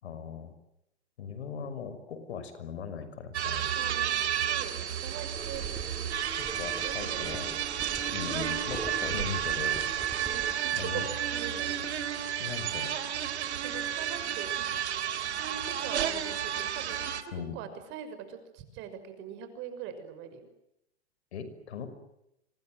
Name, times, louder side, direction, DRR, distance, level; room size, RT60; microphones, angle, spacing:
voice 1, 0.0-0.5 1.2-3.7 6.6-7.5 8.1-9.8 10.7-11.1 12.4-12.9 17.3-17.6 21.3-21.9, left 6 dB, 75° left, 11 dB, 6.1 m, -39 dB
sound 1, 3.3-17.2, right 10 dB, 80° right, 3.4 m, -32 dB
voice 2, 3.7-5.7 6.7-7.5 7.8-8.1 10.3-11.8 13.6-14.6 15.2-20.5, right 8 dB, 35° right, 9 dB, 6.1 m, -43 dB
sound 2, 5.3-10.6, right 2 dB, 5° right, 3.1 m, -43 dB
27.0 x 25.5 x 7.8 m, 0.82 s
hypercardioid pair, 140°, 33 cm